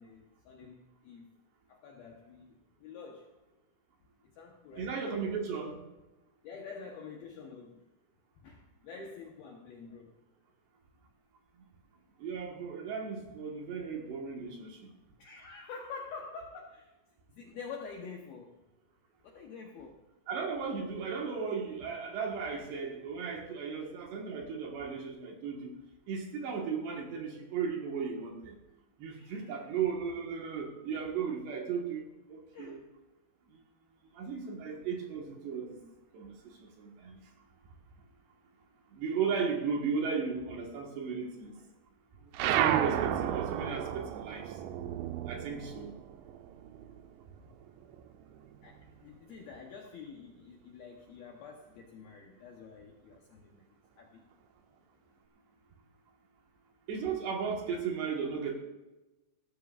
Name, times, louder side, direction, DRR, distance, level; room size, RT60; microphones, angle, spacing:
voice 1, 0.0-1.3 1.7-3.3 4.2-5.0 6.4-7.9 8.4-10.2 15.2-16.9 17.3-18.6 19.2-20.1 29.1-29.7 32.5-32.8 48.6-54.2, left 5 dB, 75° left, 1 dB, 2.3 m, -47 dB
voice 2, 4.8-5.8 12.2-14.9 20.3-25.7 26.1-28.6 29.0-32.8 34.1-35.8 36.1-37.2 38.9-41.6 42.2-44.6 45.3-46.0 56.9-58.6, right 6 dB, 65° right, 1 dB, 3.4 m, -36 dB
sound 1, 42.3-47.2 47.5-49.0, right 10 dB, 85° right, 2.7 m, -33 dB
18.0 x 13.0 x 2.5 m, 1.0 s
omnidirectional pair, 5.8 m